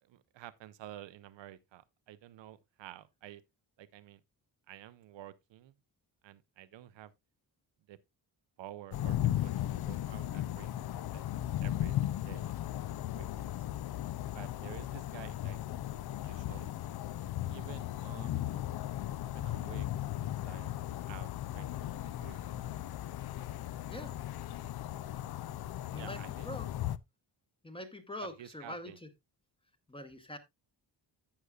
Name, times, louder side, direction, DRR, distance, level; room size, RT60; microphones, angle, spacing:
voice 1, 0.0-3.4 3.8-4.2 4.7-5.7 6.2-7.1 7.9-8.0 8.6-10.8 11.1-11.2 11.6-13.5 14.3-15.6 16.2-16.7 17.5-18.6 19.2-20.7 21.1-23.1 25.9-26.6 28.4-29.0, right 13 dB, 90° right, 0.7 m, -51 dB
sound 1, 8.9-27.0, left 13 dB, 60° left, 0.5 m, -36 dB
voice 2, 27.6-29.1 29.9-30.4, left 1 dB, 10° left, 0.9 m, -43 dB
11.5 x 8.1 x 2.3 m
wide cardioid pair, 165°, 43 cm